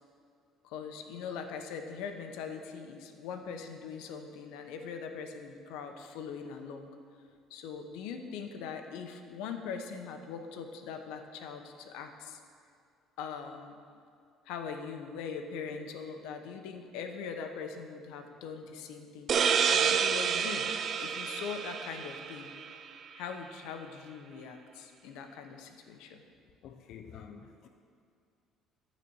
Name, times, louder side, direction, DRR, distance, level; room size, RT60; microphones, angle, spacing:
voice 1, 0.6-6.9 7.5-12.4 13.2-13.8 14.5-20.7 21.0-22.5 23.1-26.2, left 6 dB, 90° left, 6 dB, 0.8 m, -41 dB
sound 1, 19.3-22.7, right 7 dB, 40° right, 0.4 m, -29 dB
voice 2, 26.6-27.7, left 7 dB, 55° left, 4 dB, 0.5 m, -48 dB
12.5 x 4.2 x 6.9 m, 2.4 s
cardioid pair, 145°, 0 cm